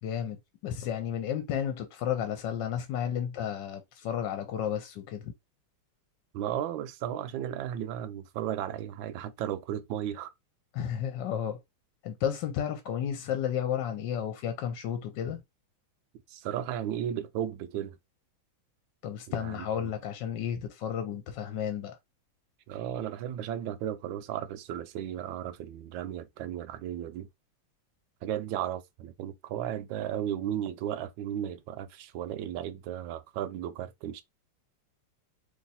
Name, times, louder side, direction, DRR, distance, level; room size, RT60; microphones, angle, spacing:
voice 1, 0.0-5.3 10.7-11.6 12.0-15.4 19.0-22.0, left 9 dB, 65° left, 1.2 m, -32 dB
voice 2, 6.3-10.3 16.3-18.0 19.3-19.9 22.7-27.3 28.2-34.2, right 10 dB, 75° right, 1.2 m, -35 dB
3.0 x 3.0 x 4.1 m
omnidirectional pair, 2.3 m